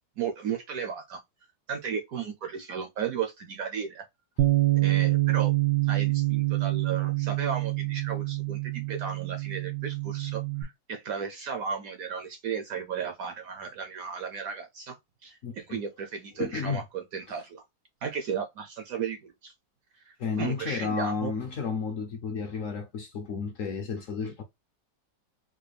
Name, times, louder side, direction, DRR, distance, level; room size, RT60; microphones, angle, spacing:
voice 1, 0.2-1.2 1.7-4.0 4.8-5.5 5.8-17.6 18.0-19.5 19.9-21.3, right 7 dB, 70° right, 0.8 m, -35 dB
Bass guitar, 4.4-10.6, right 18 dB, 90° right, 1.3 m, -26 dB
voice 2, 15.4-15.8 16.4-16.8 17.3-17.4 20.2-24.4, left 5 dB, 65° left, 0.8 m, -32 dB
4.0 x 2.2 x 3.3 m
omnidirectional pair, 1.9 m